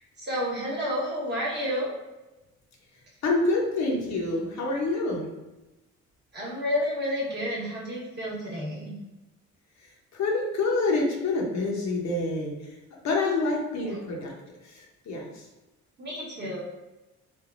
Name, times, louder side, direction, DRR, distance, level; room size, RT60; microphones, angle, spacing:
voice 1, 0.0-1.9 6.3-9.0 13.8-13.9 16.0-16.6, equal, 35° right, -5 dB, 1.1 m, -30 dB
voice 2, 3.2-5.2 10.1-12.5 13.0-14.3 14.7-15.4, left 2 dB, 65° left, -1 dB, 0.8 m, -27 dB
3.3 x 2.2 x 2.5 m, 1.1 s
cardioid pair, 90°, 30 cm